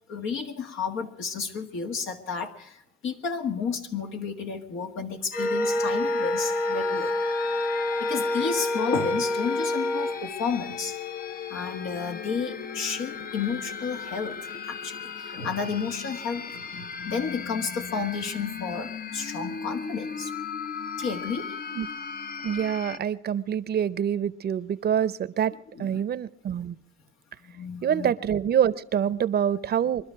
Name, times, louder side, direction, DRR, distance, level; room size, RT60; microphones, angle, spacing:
voice 1, 0.1-7.2 8.0-11.0 11.5-20.3 21.0-21.5 25.7-26.0 27.4-28.1, left 5 dB, 80° left, 4 dB, 1.9 m, -32 dB
sound 1, 5.3-23.0, left 6 dB, 45° left, 0.7 m, -37 dB
Wind instrument woodwind instrument, 5.3-10.2, left 1 dB, 5° left, 0.8 m, -27 dB
voice 2, 22.4-26.8 27.8-30.1, right 9 dB, 55° right, 15 dB, 0.7 m, -26 dB
23.5 x 12.5 x 4.7 m, 0.71 s
cardioid pair, 90°, 20 cm